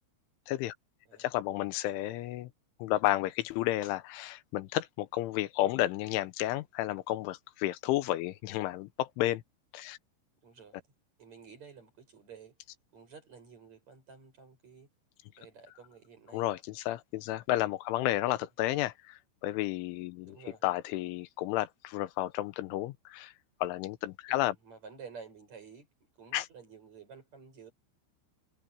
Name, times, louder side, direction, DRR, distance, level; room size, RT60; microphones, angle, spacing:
voice 1, 1.2-2.5 2.8-9.4 9.7-10.0 16.3-23.3 23.6-24.6 26.3-26.5, left 15 dB, 90° left, 3.3 m, -32 dB
voice 2, 10.4-10.8 11.2-12.6 12.9-14.9 15.4-16.5 18.2-18.4 20.2-20.6 24.3-25.9 26.2-27.7, right 6 dB, 35° right, 7.3 m, -51 dB
omnidirectional pair, 5.6 m